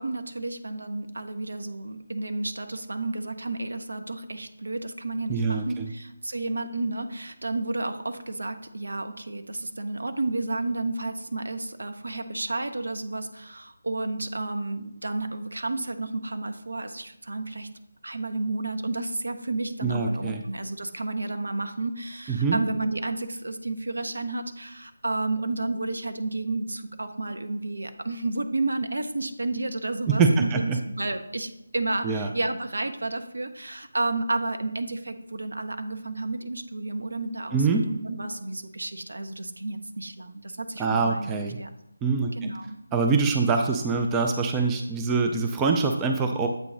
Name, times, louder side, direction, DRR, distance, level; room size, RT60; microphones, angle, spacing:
voice 1, 0.0-17.7 18.0-41.3 41.6-41.7 42.4-42.8, right 2 dB, 65° right, 7 dB, 0.7 m, -31 dB
voice 2, 5.3-5.9 19.8-20.4 22.3-22.6 30.1-30.8 32.0-32.3 37.5-37.8 40.8-41.6 42.0-42.3 42.9-46.5, right 4 dB, 10° right, 3 dB, 0.3 m, -24 dB
7.7 x 3.0 x 5.0 m, 0.84 s
figure-of-eight pair, 155°, 0 cm